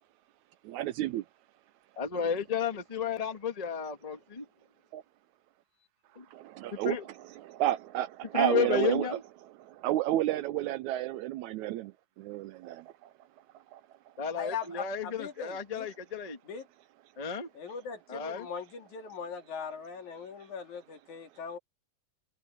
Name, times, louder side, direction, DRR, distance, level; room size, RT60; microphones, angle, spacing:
voice 1, 0.6-1.3 4.9-5.0 6.3-7.0 7.4-9.1 9.6-11.9 12.2-13.1 13.7-13.8, right 14 dB, 80° right, 1.8 m, -31 dB
voice 2, 2.0-4.4 6.1-6.2 6.8-7.0 8.3-9.2 14.2-16.4 17.2-17.5 18.1-18.5, left 7 dB, 20° left, 1.0 m, -32 dB
voice 3, 14.4-15.9 16.5-16.7 17.6-21.6, left 6 dB, 65° left, 3.8 m, -40 dB
omnidirectional pair, 3.7 m